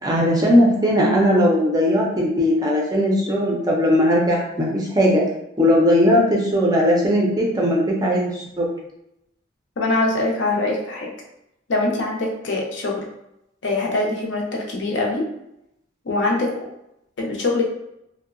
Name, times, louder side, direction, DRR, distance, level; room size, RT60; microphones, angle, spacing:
voice 1, 0.0-5.2 5.6-8.3 8.6-8.7, equal, 20° right, -3 dB, 0.4 m, -18 dB
voice 2, 9.8-11.1 11.7-13.1 13.6-15.3 16.0-16.6 17.2-17.6, left 2 dB, 70° left, -1 dB, 0.5 m, -23 dB
2.7 x 2.0 x 2.4 m, 0.82 s
head